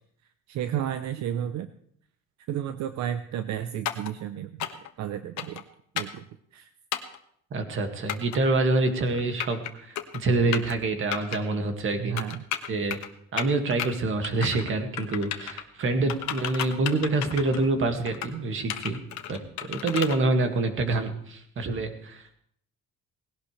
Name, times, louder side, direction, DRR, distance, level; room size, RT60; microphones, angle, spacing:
voice 1, 0.5-1.7 2.5-5.6 5.9-6.7 12.0-12.5 16.0-16.1, right 10 dB, 70° right, 10 dB, 0.7 m, -32 dB
sound 1, 3.9-4.1 4.6-4.9 5.4-5.6 6.0-6.2 6.9-7.2 8.1-8.4 9.1-9.7 10.0-10.2 10.5-10.8 11.1-11.4 12.2-13.1 13.4-13.9 14.2-14.7 15.0-15.6 16.1-17.7 18.1-18.3 18.7-20.2, left 11 dB, 70° left, 1.3 m, -32 dB
voice 2, 7.5-12.2 12.7-13.0 13.3-19.0 19.3-19.4 19.7-22.4, right 2 dB, 45° right, 6 dB, 2.0 m, -26 dB
19.0 x 17.0 x 3.3 m, 0.65 s
cardioid pair, 160°, 29 cm